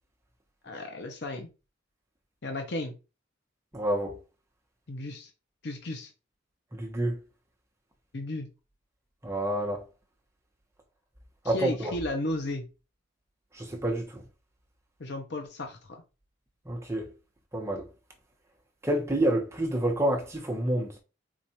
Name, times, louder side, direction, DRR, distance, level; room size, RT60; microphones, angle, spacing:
voice 1, 0.6-1.5 2.4-2.9 4.9-5.3 5.6-6.1 8.1-8.5 11.4-12.6 15.0-15.9, left 1 dB, 65° left, 0.7 m, -34 dB
voice 2, 3.7-4.2 6.7-7.2 9.2-9.8 11.4-11.9 13.5-14.2 16.7-17.1 17.5-17.8 18.8-20.9, right 1 dB, 15° right, 0.9 m, -28 dB
4.6 x 2.4 x 2.8 m
head